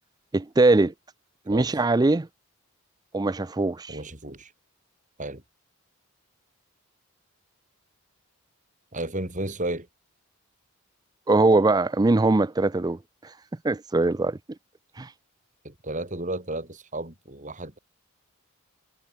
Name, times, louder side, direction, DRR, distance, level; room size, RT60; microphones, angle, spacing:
voice 1, 0.3-0.9 1.5-2.3 3.1-4.0 11.3-13.0 13.6-14.4 15.0-15.1, right 2 dB, 15° right, 0.4 m, -21 dB
voice 2, 3.9-4.5 5.2-5.4 8.9-9.9 15.6-17.8, right 1 dB, 35° right, 4.9 m, -33 dB
head